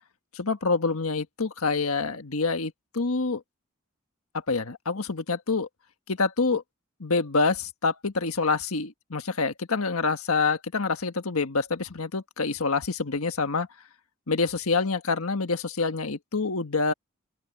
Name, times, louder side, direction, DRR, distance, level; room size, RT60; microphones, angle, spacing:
voice 1, 0.3-3.4 4.5-5.7 6.1-6.6 7.0-13.7 14.3-16.9, left 4 dB, 85° left, 1.5 m, -26 dB
open air
head